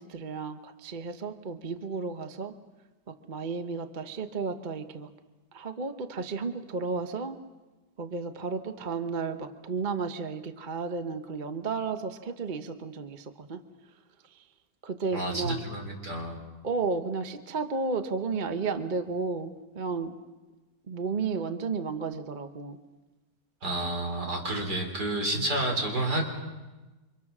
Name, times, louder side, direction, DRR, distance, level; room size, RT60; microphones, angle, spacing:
voice 1, 0.0-2.5 3.1-5.1 5.5-7.4 8.0-13.6 14.3-14.4 14.8-15.6 16.6-20.2 20.9-22.8, right 4 dB, 35° right, 8 dB, 0.9 m, -33 dB
voice 2, 15.1-16.4 23.6-26.2, right 1 dB, 65° right, 2 dB, 4.8 m, -30 dB
29.0 x 25.5 x 6.1 m, 1.2 s
omnidirectional pair, 1.9 m